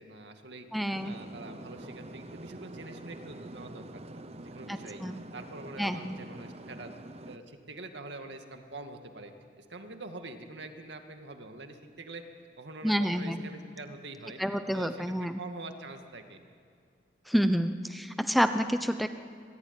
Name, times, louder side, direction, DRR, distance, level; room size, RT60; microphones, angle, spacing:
voice 1, 0.0-5.0 5.3-6.9 7.2-9.3 9.6-12.2 12.6-14.4 14.7-16.4, right 2 dB, 70° right, 5 dB, 2.3 m, -45 dB
voice 2, 0.7-1.2 4.7-5.2 5.8-6.2 12.8-13.5 14.4-15.4 17.3-19.1, equal, ahead, 8 dB, 0.8 m, -28 dB
sound 1, 0.9-7.4, right 1 dB, 35° right, 1.0 m, -46 dB
25.5 x 19.5 x 10.0 m, 2.2 s
head